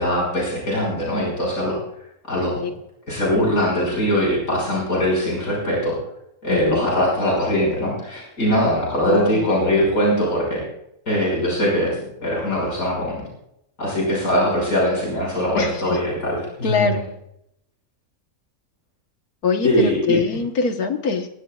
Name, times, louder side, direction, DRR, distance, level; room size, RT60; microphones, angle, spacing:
voice 1, 0.0-1.8 2.3-2.6 3.1-5.9 6.4-10.6 11.1-13.2 13.8-17.0 19.6-20.2, equal, 70° left, -4 dB, 6.5 m, -21 dB
voice 2, 6.5-6.9 9.1-9.5 15.6-16.0 16.6-17.0 19.4-21.3, left 5 dB, 85° left, 6 dB, 1.8 m, -23 dB
23.5 x 16.5 x 2.4 m, 0.79 s
omnidirectional pair, 1.5 m